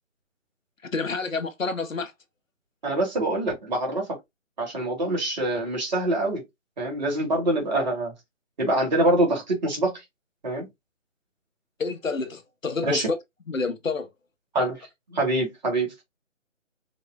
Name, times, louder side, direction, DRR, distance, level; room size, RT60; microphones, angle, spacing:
voice 1, 0.8-2.1 11.8-13.2 13.5-14.1, left 4 dB, 90° left, 1.1 m, -28 dB
voice 2, 2.8-4.1 4.6-6.4 6.8-8.1 8.6-10.0 10.4-10.7 12.8-13.1 14.5-16.0, right 1 dB, 35° right, 1.7 m, -25 dB
4.7 x 2.1 x 3.5 m
figure-of-eight pair, 160°, 38 cm